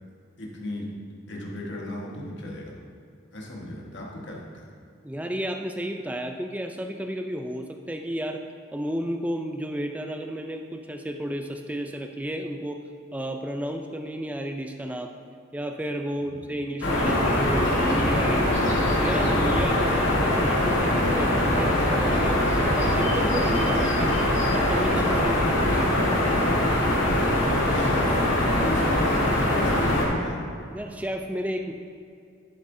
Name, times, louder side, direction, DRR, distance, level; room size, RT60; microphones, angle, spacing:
voice 1, 0.4-0.9 1.3-2.8 3.3-4.7 16.3-16.5 19.8-20.1 27.5-28.3 28.6-30.4, left 1 dB, 65° left, -2 dB, 1.4 m, -36 dB
voice 2, 5.0-8.4 8.7-12.8 13.1-15.1 15.5-18.5 19.0-22.4 22.8-24.2 24.5-26.0 30.7-31.7, equal, 5° right, 4 dB, 0.4 m, -32 dB
sound 1, 16.8-30.0, left 1 dB, 85° left, 2.0 m, -22 dB
10.5 x 7.5 x 2.7 m, 2.4 s
head